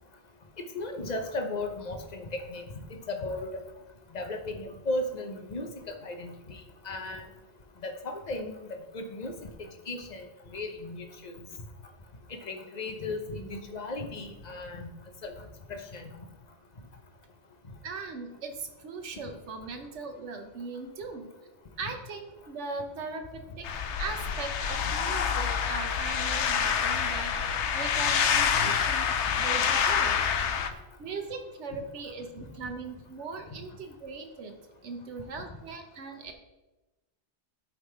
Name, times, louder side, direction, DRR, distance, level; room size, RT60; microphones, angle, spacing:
voice 1, 0.6-2.6 2.9-3.6 4.1-5.7 6.0-6.6 6.8-7.3 7.8-9.5 9.9-10.3 10.5-11.5 12.3-14.9 15.2-15.3 15.7-16.1, left 2 dB, 40° left, 5 dB, 0.9 m, -36 dB
voice 2, 17.8-21.3 21.8-23.7 24.0-29.0 29.3-30.2 31.0-34.5 34.8-36.3, right 4 dB, 85° right, 4 dB, 1.1 m, -39 dB
sound 1, 23.6-30.7, left 7 dB, 80° left, 1.0 m, -27 dB
11.5 x 3.9 x 4.8 m, 1.1 s
omnidirectional pair, 1.2 m